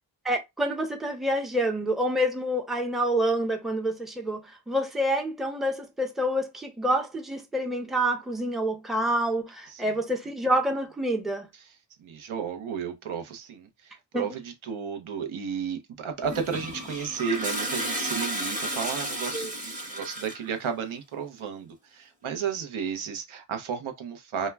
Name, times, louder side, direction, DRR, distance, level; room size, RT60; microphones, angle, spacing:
voice 1, 0.2-11.5 14.1-14.2 19.3-19.5, right 1 dB, ahead, 0.5 m, -27 dB
voice 2, 12.0-24.5, right 6 dB, 90° right, 0.7 m, -33 dB
Toilet flush, 16.2-20.5, right 1 dB, 15° right, 0.8 m, -33 dB
2.1 x 2.1 x 3.3 m
wide cardioid pair, 85°, 47 cm